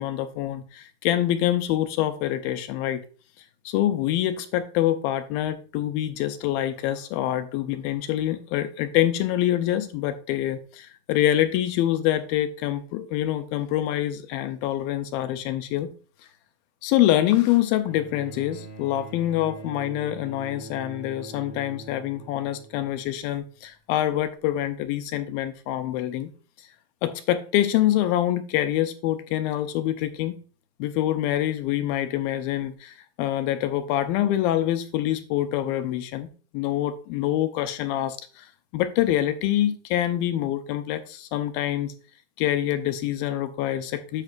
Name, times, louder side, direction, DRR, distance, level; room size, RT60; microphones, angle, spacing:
voice 1, 0.0-3.0 3.7-15.9 16.8-26.3 27.0-30.3 30.8-36.3 36.5-38.5 38.7-41.9 42.4-44.2, left 12 dB, 80° left, 2.3 m, -25 dB
Bowed string instrument, 17.8-23.3 24.4-24.5, right 2 dB, 30° left, 2.1 m, -43 dB
10.5 x 7.9 x 2.4 m
omnidirectional pair, 4.5 m